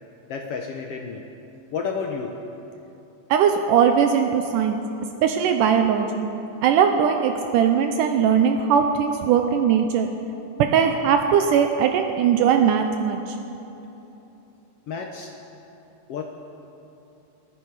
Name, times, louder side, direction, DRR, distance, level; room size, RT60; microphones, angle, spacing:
voice 1, 0.3-1.2 1.7-2.3 14.9-15.3 16.1-16.2, left 5 dB, 85° left, 2 dB, 1.3 m, -30 dB
voice 2, 3.3-4.8 5.2-6.3 6.6-10.1 10.6-13.2, right 7 dB, 80° right, 5 dB, 2.1 m, -20 dB
28.0 x 10.0 x 4.8 m, 2.9 s
omnidirectional pair, 3.9 m